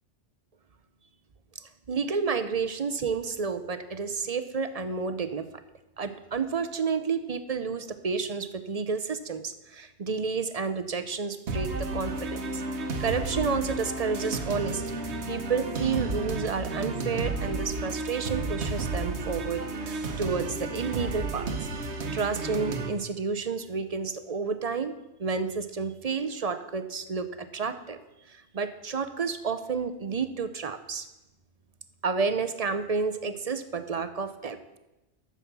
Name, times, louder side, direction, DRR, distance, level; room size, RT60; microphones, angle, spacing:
voice 1, 1.9-5.4 6.0-12.6 13.0-15.0 15.3-21.5 22.1-24.9 25.2-28.0 28.3-31.1 32.0-34.6, right 5 dB, 40° right, 10 dB, 0.7 m, -30 dB
sound 1, 11.5-22.9, right 3 dB, 80° right, 1.3 m, -32 dB
12.0 x 7.2 x 6.0 m, 0.98 s
omnidirectional pair, 1.1 m